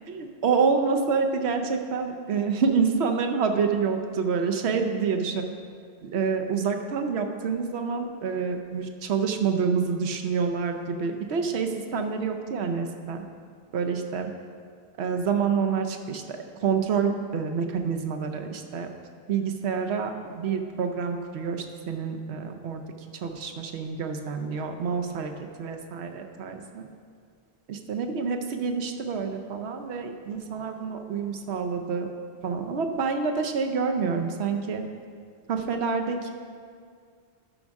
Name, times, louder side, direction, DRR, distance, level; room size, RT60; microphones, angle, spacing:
voice 1, 0.1-5.4 6.0-13.2 13.7-14.3 15.0-18.9 19.3-22.8 23.1-25.3 25.6-26.9 27.7-32.1 32.4-34.8 35.5-36.3, right 5 dB, 85° right, 5 dB, 0.9 m, -27 dB
12.0 x 5.2 x 3.6 m, 2.1 s
omnidirectional pair, 1.1 m